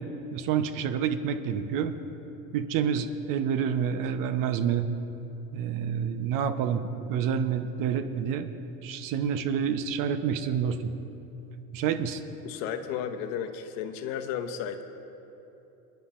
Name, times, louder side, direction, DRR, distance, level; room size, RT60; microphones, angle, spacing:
voice 1, 0.3-1.9 2.5-4.9 5.5-8.5 8.8-10.9 11.7-12.2, right 7 dB, 45° right, 9 dB, 0.9 m, -28 dB
voice 2, 12.4-14.8, left 8 dB, 60° left, 7 dB, 1.0 m, -33 dB
25.0 x 10.5 x 2.5 m, 2.9 s
hypercardioid pair, 95°, 46 cm